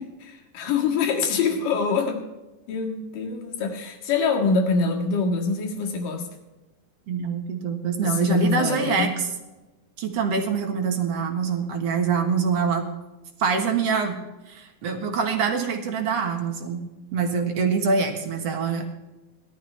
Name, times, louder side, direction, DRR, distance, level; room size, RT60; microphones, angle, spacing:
voice 1, 0.5-2.2 2.7-6.3 8.0-9.1, left 4 dB, 75° left, 1 dB, 3.5 m, -24 dB
voice 2, 7.1-9.3 10.0-12.9 13.4-14.2 14.5-16.9 17.1-18.9, right 5 dB, 55° right, 4 dB, 2.2 m, -25 dB
19.0 x 12.5 x 3.4 m, 1.1 s
omnidirectional pair, 3.9 m